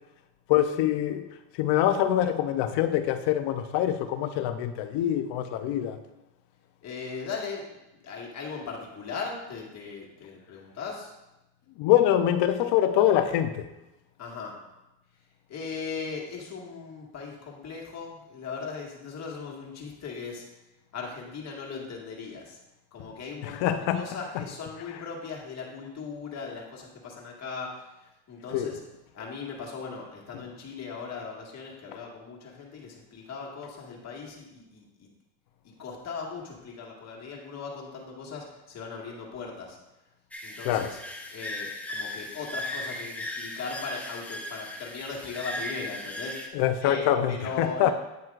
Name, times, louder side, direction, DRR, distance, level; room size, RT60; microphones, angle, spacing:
voice 1, 0.5-1.3 1.5-6.0 11.8-13.7 23.4-24.0 28.5-28.7 40.6-40.9 46.5-47.9, left 11 dB, 70° left, 0.8 m, -24 dB
voice 2, 6.8-7.7 8.0-11.1 14.2-14.6 15.5-20.4 20.9-22.6 22.9-28.8 29.1-35.1 35.6-39.8 40.4-41.0 41.3-47.9, left 5 dB, 40° left, 1.9 m, -38 dB
sound 1, 40.3-46.5, left 1 dB, 5° left, 0.6 m, -37 dB
9.4 x 7.6 x 2.5 m
cardioid pair, 140°, 43 cm